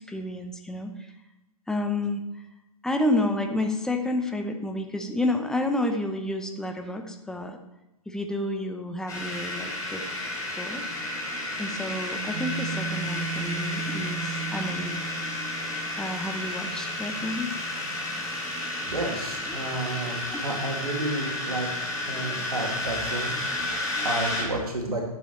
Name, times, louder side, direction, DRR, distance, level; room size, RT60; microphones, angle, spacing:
voice 1, 0.1-0.9 1.7-2.4 2.8-7.6 8.1-10.2 10.6-10.8 11.6-15.0 16.0-17.5 19.5-19.7 20.3-20.4, left 1 dB, 5° left, 5 dB, 0.7 m, -30 dB
Creaking Door, 9.1-24.4, left 2 dB, 20° left, 2.6 m, -32 dB
sound 1, 12.3-19.0, right 6 dB, 25° right, 1.4 m, -37 dB
voice 2, 18.9-21.7 22.1-25.0, right 2 dB, 80° right, 1 dB, 2.1 m, -31 dB
11.0 x 7.1 x 3.1 m, 0.94 s
figure-of-eight pair, 115°, 19 cm